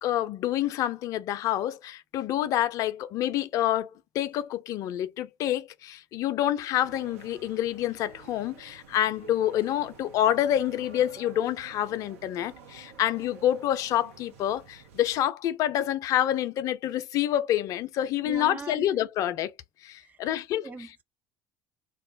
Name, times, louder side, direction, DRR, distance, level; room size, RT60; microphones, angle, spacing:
voice 1, 0.0-19.5 19.8-20.7, left 12 dB, 50° left, 0.4 m, -27 dB
sound 1, 6.8-15.2, right 7 dB, 75° right, 0.7 m, -50 dB
voice 2, 18.2-18.9 20.0-20.4 20.6-21.0, right 4 dB, 20° right, 0.4 m, -40 dB
2.3 x 2.0 x 3.7 m
figure-of-eight pair, 65°, 7 cm